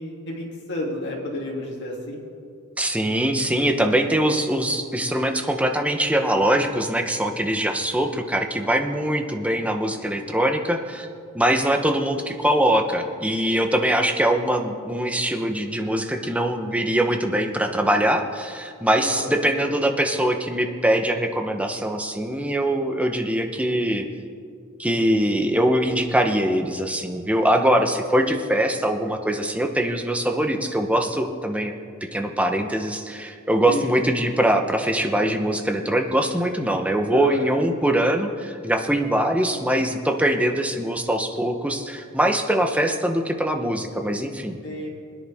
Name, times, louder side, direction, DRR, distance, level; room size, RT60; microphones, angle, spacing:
voice 1, 0.0-2.2 19.0-19.3 19.6-19.7 33.7-33.9 37.1-37.6 44.6-44.9, left 1 dB, 55° left, -3 dB, 2.9 m, -31 dB
voice 2, 2.8-11.1 11.3-24.0 24.8-31.8 32.1-44.6, right 1 dB, 5° right, 4 dB, 0.9 m, -22 dB
21.5 x 10.0 x 3.6 m, 2.3 s
head